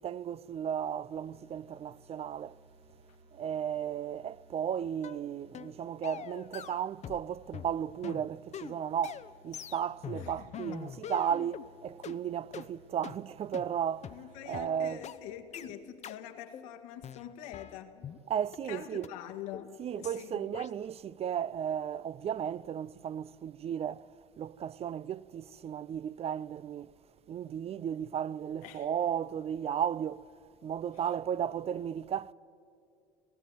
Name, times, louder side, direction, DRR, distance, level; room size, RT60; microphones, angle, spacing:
voice 1, 0.0-2.6 3.3-14.2 14.5-15.0 18.3-19.1 19.8-24.1 24.4-26.9 27.3-30.3 30.6-32.3, right 9 dB, 35° right, 0.4 m, -34 dB
sound 1, 1.1-14.6, right 2 dB, 85° right, 4.1 m, -61 dB
sound 2, 5.0-5.2 5.5-5.7 6.0-7.3 7.5-11.7 12.0-12.2 12.5-12.7 13.0-13.2 13.5-13.7 14.0-14.2 14.5-14.7 15.0-15.2 15.5-15.7 16.0-16.2 16.5-16.7 17.0-18.2 18.5-18.6 19.0-19.1 19.5-19.7 20.0-20.2 20.5-20.7, left 9 dB, 40° left, 0.8 m, -43 dB
voice 2, 10.1-10.8 14.1-18.1 18.7-20.5 28.6-28.9, left 10 dB, 75° left, 1.8 m, -45 dB
18.5 x 16.0 x 9.8 m
hypercardioid pair, 75°, 18 cm